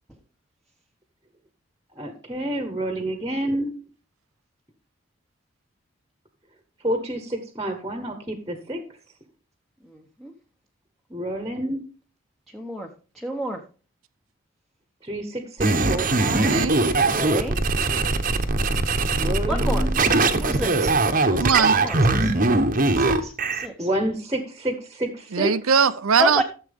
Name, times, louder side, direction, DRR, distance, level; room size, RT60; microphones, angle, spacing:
voice 1, 1.9-3.8 6.8-8.8 11.1-11.8 15.0-16.7 19.0-20.0 23.8-25.6, right 1 dB, 15° right, 1.1 m, -28 dB
voice 2, 9.9-10.3 12.5-12.9 13.1-13.6 17.0-17.6 19.5-19.9 20.2-20.9 21.2-21.5 21.8-22.3 22.9-23.9 26.2-26.4, equal, ahead, 0.9 m, -30 dB
sound 1, 15.6-23.7, right 3 dB, 40° right, 0.9 m, -21 dB
voice 3, 16.4-16.8 21.4-21.8 25.3-26.4, right 6 dB, 75° right, 0.6 m, -21 dB
13.5 x 7.5 x 3.5 m
head